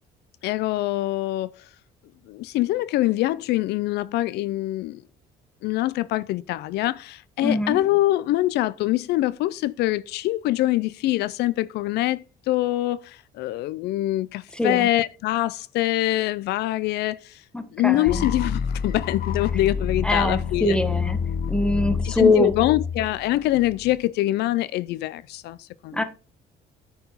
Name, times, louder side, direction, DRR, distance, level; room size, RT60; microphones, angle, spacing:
voice 1, 0.4-1.7 2.3-5.0 5.6-17.4 17.7-20.8 22.0-26.0, left 16 dB, 80° left, 0.5 m, -24 dB
voice 2, 7.4-7.8 14.6-14.9 17.5-18.2 20.0-21.2 21.5-22.5 25.9-26.0, left 2 dB, 5° left, 1.3 m, -23 dB
sound 1, 18.1-24.0, left 6 dB, 65° left, 1.1 m, -28 dB
9.4 x 4.6 x 5.6 m
cardioid pair, 110°, 17 cm